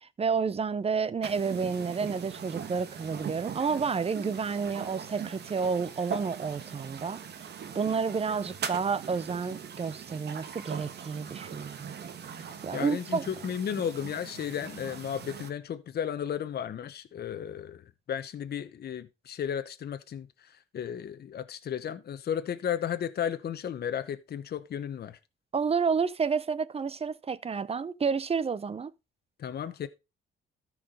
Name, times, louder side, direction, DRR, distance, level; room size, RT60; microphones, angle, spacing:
voice 1, 0.0-7.2 7.7-11.9 12.6-13.2 25.5-28.9, right 5 dB, 30° right, 0.7 m, -30 dB
sound 1, 1.2-15.5, right 7 dB, 55° right, 1.3 m, -41 dB
voice 2, 12.7-25.2 29.4-29.9, left 9 dB, 55° left, 0.9 m, -34 dB
13.5 x 4.8 x 5.1 m
cardioid pair, 90°, 20 cm